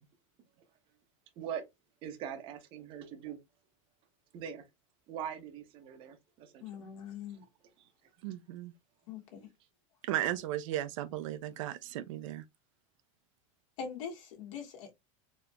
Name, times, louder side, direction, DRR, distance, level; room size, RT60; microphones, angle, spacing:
voice 1, 2.0-3.4 4.3-4.6 5.1-6.8 9.4-9.5, right 8 dB, 30° right, 0.7 m, -42 dB
voice 2, 6.6-7.5 9.1-9.5 13.8-14.9, left 6 dB, 70° left, 1.3 m, -42 dB
voice 3, 8.2-8.7 10.0-12.4, right 13 dB, 65° right, 0.4 m, -35 dB
4.2 x 2.8 x 2.2 m
supercardioid pair, 165°, 17 cm